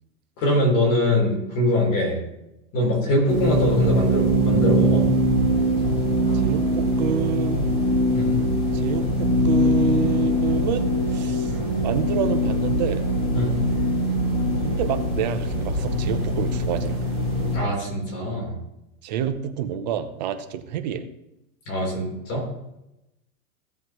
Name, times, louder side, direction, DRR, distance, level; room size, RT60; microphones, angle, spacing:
voice 1, 0.4-2.2 2.7-5.1 8.1-8.4 11.5-11.7 13.3-13.6 17.5-18.6 21.7-22.5, left 1 dB, 30° left, -2 dB, 3.8 m, -23 dB
sound 1, 3.3-17.6, equal, 15° left, 3.8 m, -22 dB
voice 2, 6.3-7.7 8.7-11.5 11.8-13.1 14.6-17.1 19.0-21.0, right 9 dB, 30° right, 9 dB, 0.6 m, -28 dB
16.0 x 7.4 x 3.1 m, 0.89 s
supercardioid pair, 170°, 45 cm